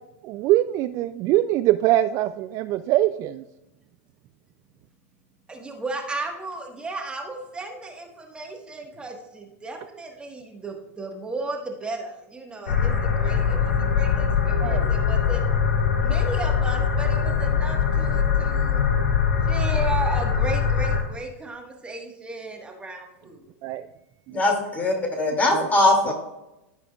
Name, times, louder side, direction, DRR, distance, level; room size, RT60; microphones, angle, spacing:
voice 1, 0.2-3.4 14.6-15.0 23.6-23.8 24.3-24.4 25.5-25.7, right 14 dB, 40° right, 12 dB, 0.3 m, -23 dB
voice 2, 5.5-15.4 16.0-18.8 19.5-23.5, right 3 dB, 15° right, 2 dB, 1.4 m, -34 dB
sound 1, 12.7-21.0, left 7 dB, 70° left, 2.1 m, -22 dB
voice 3, 24.3-26.1, left 2 dB, 20° left, 2 dB, 2.4 m, -21 dB
14.5 x 5.0 x 2.4 m, 0.93 s
hypercardioid pair, 105°, 8 cm